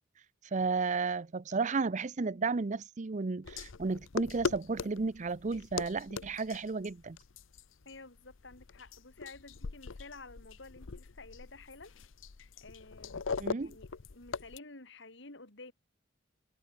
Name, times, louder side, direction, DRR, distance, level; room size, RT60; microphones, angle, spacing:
voice 1, 0.5-7.2 13.4-13.7, right 4 dB, 40° right, 0.6 m, -33 dB
sound 1, 3.4-14.6, left 4 dB, 85° left, 0.7 m, -41 dB
voice 2, 7.8-11.9 12.6-15.7, left 3 dB, 65° left, 4.4 m, -52 dB
head